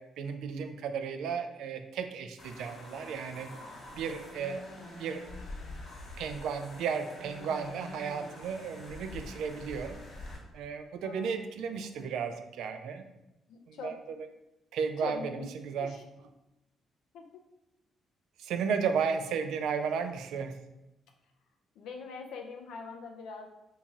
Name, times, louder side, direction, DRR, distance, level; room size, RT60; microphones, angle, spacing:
voice 1, 0.0-3.5 3.9-4.6 5.0-5.2 6.2-10.0 10.5-13.0 13.7-14.2 14.7-16.0 18.4-20.6, right 6 dB, 80° right, 7 dB, 0.3 m, -34 dB
sound 1, 2.4-10.4, left 1 dB, 55° left, 1.0 m, -46 dB
voice 2, 11.0-11.4 13.5-13.9 15.0-15.5 15.8-16.0 17.1-17.4 21.8-23.5, left 5 dB, 85° left, 3 dB, 0.5 m, -42 dB
3.0 x 2.7 x 3.6 m, 0.93 s
cardioid pair, 90°, 0 cm